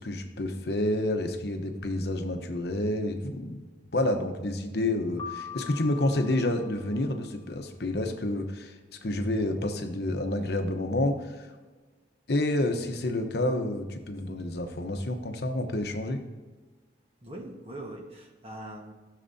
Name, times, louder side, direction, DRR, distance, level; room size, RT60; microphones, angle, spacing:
voice 1, 0.0-3.6 3.9-8.7 9.0-11.5 12.3-16.2, left 1 dB, 60° left, 5 dB, 0.9 m, -29 dB
Piano, 5.2-7.3, left 8 dB, 25° left, 1.1 m, -42 dB
voice 2, 17.2-18.9, right 1 dB, 30° right, 1 dB, 1.3 m, -41 dB
14.5 x 6.6 x 2.7 m, 1.3 s
head